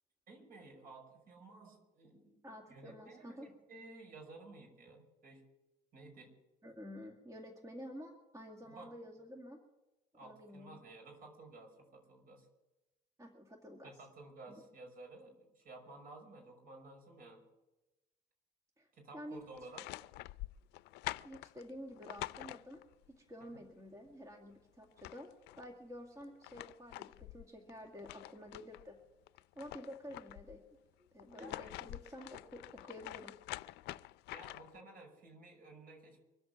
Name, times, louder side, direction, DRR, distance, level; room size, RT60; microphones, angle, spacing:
voice 1, 0.3-2.4 2.7-5.5 5.9-6.3 8.6-9.0 10.1-12.5 13.8-17.4 18.9-19.9 23.5-23.6 31.3-31.7 34.3-36.2, right 2 dB, 60° right, 2 dB, 5.9 m, -54 dB
voice 2, 2.4-3.5 6.6-9.6 10.2-10.8 13.2-13.9 14.5-14.6 18.8-18.9 19.1-19.4 21.2-22.8 23.1-25.3 25.6-29.0 29.6-30.6 31.1-33.3, equal, 20° right, 2 dB, 2.1 m, -50 dB
sound 1, 19.5-23.1 24.5-24.6 24.8-25.7 26.2-28.9 29.3-30.6 31.2-34.8, left 18 dB, 85° left, 0.4 m, -47 dB
24.0 x 8.0 x 7.3 m, 1.0 s
cardioid pair, 110°, 17 cm